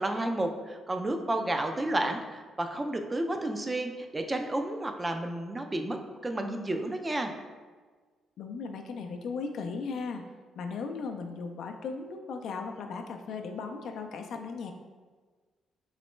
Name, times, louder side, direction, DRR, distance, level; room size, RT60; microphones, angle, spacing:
voice 1, 0.0-7.3, right 1 dB, 20° right, 5 dB, 0.3 m, -31 dB
voice 2, 8.4-10.2 10.6-14.7, left 4 dB, 70° left, 5 dB, 0.3 m, -37 dB
3.1 x 2.9 x 3.1 m, 1.5 s
cardioid pair, 90°, 0 cm